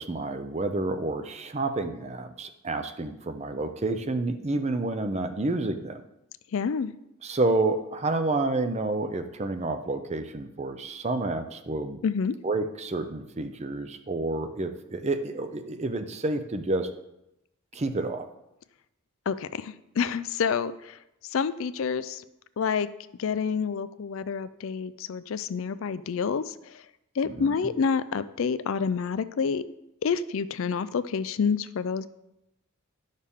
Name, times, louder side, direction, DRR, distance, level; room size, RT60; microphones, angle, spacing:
voice 1, 0.0-6.0 7.2-12.0 12.4-16.9 17.7-18.3 27.2-27.6, right 2 dB, 30° right, 8 dB, 0.6 m, -29 dB
voice 2, 6.5-6.9 12.0-12.3 19.3-21.0 21.3-22.2 22.6-22.9 23.2-26.8 27.2-29.6 30.0-32.1, left 6 dB, 60° left, 14 dB, 0.4 m, -28 dB
11.0 x 6.5 x 3.6 m, 0.87 s
head